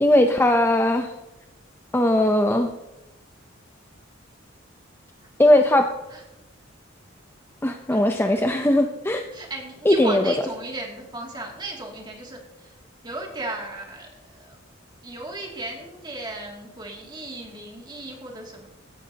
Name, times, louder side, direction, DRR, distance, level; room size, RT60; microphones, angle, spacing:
voice 1, 0.0-1.1 1.9-2.7 5.4-5.9 7.6-9.2 9.9-10.3, left 1 dB, 10° left, 5 dB, 0.6 m, -19 dB
voice 2, 9.3-12.8 13.0-14.6 15.0-18.7, right 2 dB, 20° right, 0 dB, 2.5 m, -36 dB
15.5 x 11.5 x 2.9 m, 0.99 s
head